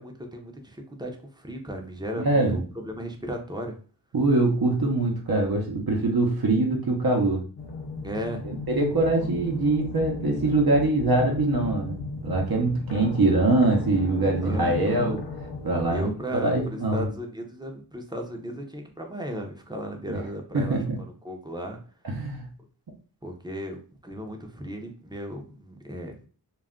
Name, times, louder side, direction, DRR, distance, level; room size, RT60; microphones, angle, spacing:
voice 1, 0.0-3.8 8.0-8.4 9.2-9.3 14.4-15.2 15.9-20.8 21.2-21.8 23.2-26.2, equal, 10° right, 2 dB, 0.6 m, -35 dB
voice 2, 2.2-2.6 4.1-7.4 8.4-15.2 15.6-17.1 20.5-21.0 22.0-22.5, right 2 dB, 60° right, 0 dB, 0.7 m, -23 dB
sound 1, 7.6-16.0, left 3 dB, 75° left, 0.6 m, -35 dB
2.3 x 2.1 x 3.6 m, 0.40 s
wide cardioid pair, 40°, 43 cm